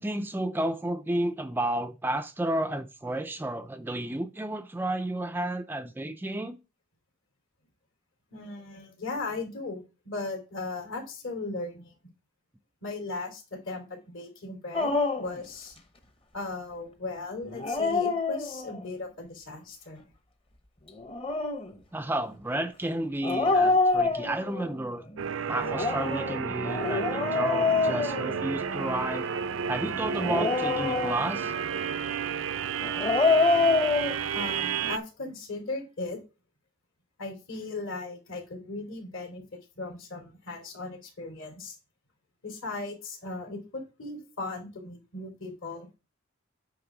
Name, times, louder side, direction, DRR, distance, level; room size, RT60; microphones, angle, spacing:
voice 1, 0.0-6.6 21.9-25.1 25.5-29.3 29.7-31.5, right 1 dB, 10° right, 0.4 m, -32 dB
voice 2, 8.3-11.9 12.8-15.7 16.3-20.1 33.6-33.7 34.3-36.2 37.2-41.8 42.4-45.9, left 3 dB, 65° left, 2.8 m, -37 dB
Dog, 14.7-15.4 17.5-18.8 20.9-21.7 23.2-24.7 25.6-28.8 30.1-31.5 32.8-34.1, left 3 dB, 25° left, 0.9 m, -26 dB
sound 1, 25.2-35.0, right 7 dB, 65° right, 0.5 m, -32 dB
8.8 x 3.4 x 6.0 m
head